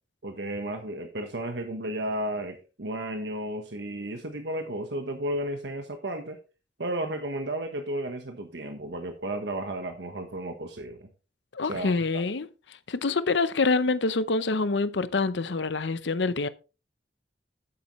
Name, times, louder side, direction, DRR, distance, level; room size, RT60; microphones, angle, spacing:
voice 1, 0.2-6.4 6.8-11.1 11.7-12.2, right 1 dB, 80° right, 1.2 m, -33 dB
voice 2, 11.5-12.5 12.9-16.5, left 3 dB, 85° left, 0.7 m, -26 dB
10.0 x 8.5 x 3.1 m
head